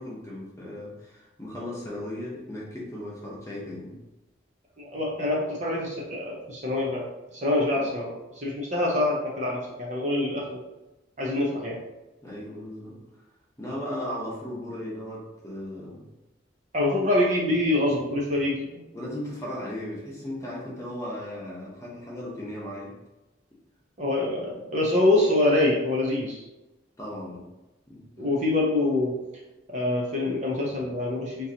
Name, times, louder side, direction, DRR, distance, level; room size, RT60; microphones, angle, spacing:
voice 1, 0.0-4.0 7.8-7.9 12.2-13.0 13.6-16.0 18.9-23.0 27.0-27.5 27.9-28.1, left 1 dB, 15° left, -6 dB, 0.9 m, -36 dB
voice 2, 4.8-7.1 7.3-10.6 11.2-11.8 16.7-18.8 24.0-26.4 28.2-29.2 29.7-31.5, left 2 dB, 40° right, -3 dB, 0.7 m, -25 dB
3.7 x 2.8 x 2.8 m, 1.0 s
head